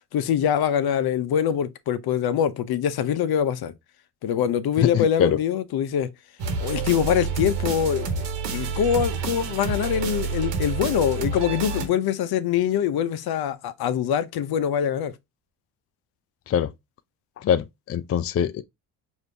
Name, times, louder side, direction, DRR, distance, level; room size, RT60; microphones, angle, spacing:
voice 1, 0.1-3.7 4.2-6.1 6.6-8.2 8.5-15.1, left 9 dB, 65° left, 0.8 m, -24 dB
voice 2, 4.9-5.3 16.5-16.7 17.4-18.6, left 8 dB, 35° left, 0.4 m, -23 dB
sound 1, 6.4-11.9, right 4 dB, 80° right, 1.1 m, -28 dB
5.0 x 2.7 x 3.3 m
supercardioid pair, 60°, 41 cm